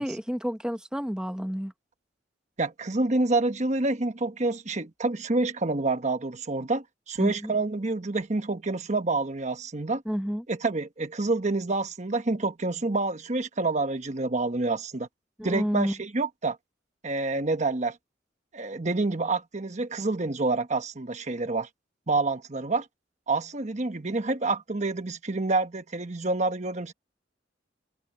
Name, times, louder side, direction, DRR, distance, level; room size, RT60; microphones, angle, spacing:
voice 1, 0.0-1.7 7.2-7.5 10.1-10.4 15.4-15.9, equal, 5° right, 0.8 m, -30 dB
voice 2, 2.6-10.0 10.5-15.1 15.4-16.6 17.0-18.0 18.5-21.7 22.1-22.9 23.3-26.9, right 3 dB, 40° right, 1.1 m, -28 dB
head